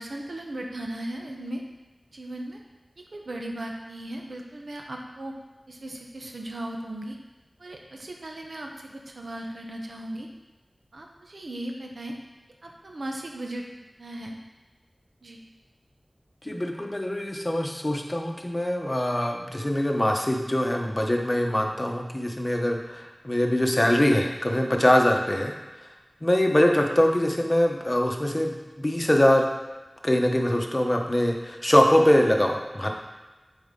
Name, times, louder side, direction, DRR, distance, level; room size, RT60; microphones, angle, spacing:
voice 1, 0.0-1.6 2.1-2.6 3.1-5.4 5.7-7.2 7.6-10.3 10.9-12.1 12.6-13.6 14.0-14.3 15.2-15.4, right 1 dB, 85° right, 1 dB, 0.8 m, -37 dB
voice 2, 16.4-25.5 26.2-29.4 30.0-32.9, left 1 dB, 30° left, 2 dB, 0.9 m, -23 dB
7.8 x 4.5 x 3.8 m, 1.2 s
wide cardioid pair, 45°, 0 cm